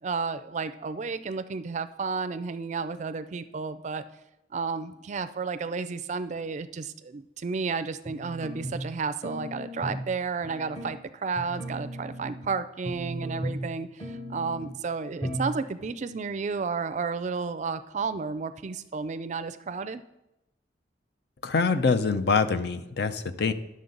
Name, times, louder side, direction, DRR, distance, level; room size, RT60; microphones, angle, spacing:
voice 1, 0.0-4.0 4.5-20.0, right 4 dB, 40° right, 11 dB, 0.4 m, -32 dB
sound 1, 8.0-8.9 9.2-10.1 10.4-10.9 11.4-12.5 12.8-13.7 14.0-14.7 15.2-15.5 15.8-15.9, right 1 dB, 30° left, 1.1 m, -36 dB
voice 2, 21.4-23.5, left 4 dB, 65° left, 11 dB, 0.6 m, -25 dB
11.0 x 6.5 x 3.9 m, 0.88 s
head